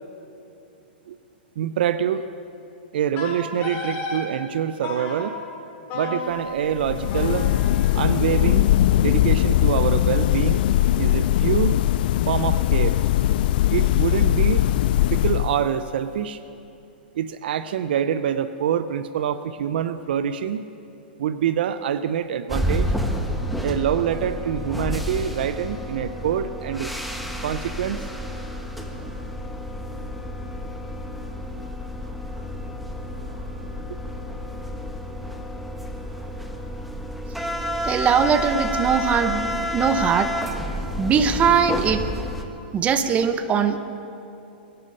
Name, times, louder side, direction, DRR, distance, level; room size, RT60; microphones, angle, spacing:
voice 1, 1.6-2.2 2.9-5.4 5.9-7.5 7.9-8.7 9.0-10.6 11.0-11.8 12.3-13.0 13.7-14.7 15.1-16.4 17.2-20.6 21.2-22.9 23.6-26.9 27.4-28.1 33.9-34.0, right 9 dB, 65° right, 13 dB, 0.6 m, -25 dB
Wind instrument woodwind instrument, 3.2-4.3 4.8-5.3 5.9-8.9, left 3 dB, 35° left, 4.5 m, -34 dB
sound 1, 6.7-15.9, left 13 dB, 60° left, 0.4 m, -20 dB
sound 2, 22.5-42.4, equal, ahead, 1.2 m, -30 dB
voice 2, 37.8-40.3 41.0-42.0 42.7-43.8, right 7 dB, 25° right, 10 dB, 0.9 m, -21 dB
22.0 x 11.5 x 5.4 m, 2.7 s
hypercardioid pair, 130°, 6 cm